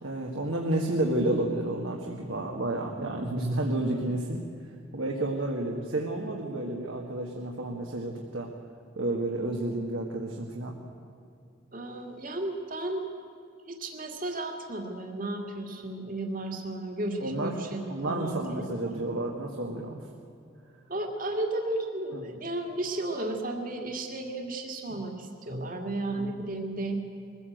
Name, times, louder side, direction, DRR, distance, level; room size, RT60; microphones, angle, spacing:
voice 1, 0.0-4.4 4.9-8.5 9.0-10.7 17.2-17.5 17.9-20.1 22.1-22.2 24.9-25.0 26.1-26.3, right 1 dB, 75° right, 0 dB, 1.8 m, -31 dB
voice 2, 11.7-13.0 13.7-19.0 20.9-27.1, right 2 dB, 40° right, 2 dB, 2.0 m, -34 dB
22.5 x 15.5 x 7.9 m, 2.4 s
head